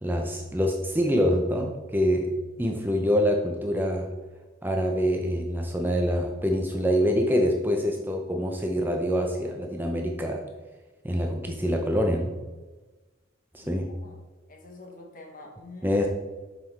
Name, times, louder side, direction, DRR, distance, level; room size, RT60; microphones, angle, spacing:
voice 1, 0.0-2.3 2.6-4.1 4.6-10.4 11.0-12.3 13.5-13.9 15.8-16.1, equal, 10° right, 2 dB, 0.5 m, -25 dB
voice 2, 14.5-16.0, left 1 dB, 45° left, 2 dB, 1.2 m, -45 dB
7.3 x 5.7 x 3.3 m, 1.2 s
head